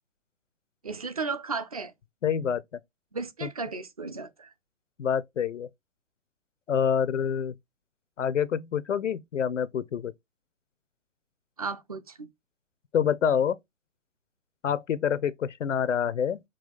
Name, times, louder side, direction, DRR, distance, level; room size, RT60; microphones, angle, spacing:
voice 1, 0.8-1.9 3.1-4.5 11.6-12.3, right 4 dB, 30° right, 0.4 m, -34 dB
voice 2, 2.2-2.6 3.4-3.5 5.0-5.7 6.7-7.5 8.2-10.1 12.9-13.6 14.6-16.4, left 8 dB, 75° left, 0.5 m, -26 dB
4.8 x 2.3 x 4.0 m
figure-of-eight pair, 130°, 38 cm